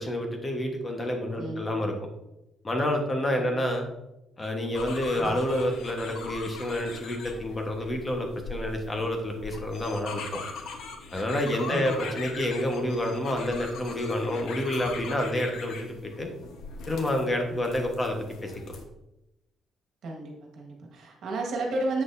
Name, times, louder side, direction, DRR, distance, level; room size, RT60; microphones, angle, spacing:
voice 1, 0.0-1.9 2.6-3.9 4.4-10.4 11.1-16.3 16.9-18.8, left 1 dB, 20° left, 3 dB, 1.2 m, -29 dB
sound 1, 4.7-18.8, left 4 dB, 75° left, 1.0 m, -41 dB
voice 2, 11.7-12.1 20.0-22.0, right 2 dB, 70° right, 0 dB, 1.6 m, -33 dB
7.8 x 6.2 x 2.7 m, 0.91 s
cardioid pair, 120°, 0 cm